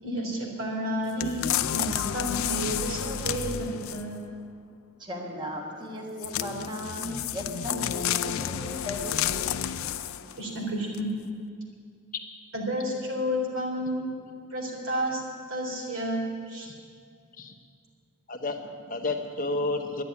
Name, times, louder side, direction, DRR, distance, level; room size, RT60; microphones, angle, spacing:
voice 1, 0.0-4.2 10.4-11.1 12.5-14.1 14.5-15.2 15.5-16.7, equal, 80° right, -1 dB, 3.8 m, -31 dB
sound 1, 1.2-4.2 6.2-10.4 10.9-11.0, left 10 dB, 85° left, 0.5 m, -30 dB
voice 2, 5.0-10.4, equal, 20° right, 0 dB, 1.4 m, -37 dB
voice 3, 18.3-20.0, left 2 dB, 40° left, 4 dB, 1.1 m, -31 dB
12.0 x 9.9 x 9.6 m, 2.3 s
head